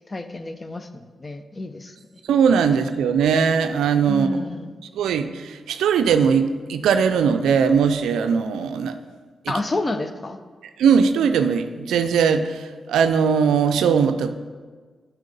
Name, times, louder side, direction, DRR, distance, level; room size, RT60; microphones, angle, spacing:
voice 1, 0.1-2.2 4.1-4.8 9.5-10.4, left 2 dB, 35° left, 10 dB, 0.6 m, -30 dB
voice 2, 2.3-4.3 4.9-9.0 10.8-14.3, right 6 dB, 80° right, 10 dB, 0.4 m, -19 dB
8.1 x 4.5 x 5.2 m, 1.5 s
supercardioid pair, 40°, 0 cm